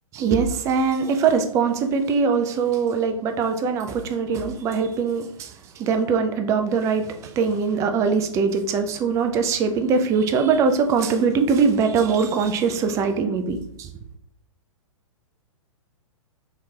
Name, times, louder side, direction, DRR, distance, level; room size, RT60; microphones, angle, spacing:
voice 1, 0.1-13.9, right 5 dB, 15° right, 6 dB, 0.3 m, -22 dB
4.3 x 2.9 x 2.3 m, 0.78 s
figure-of-eight pair, 115°, 17 cm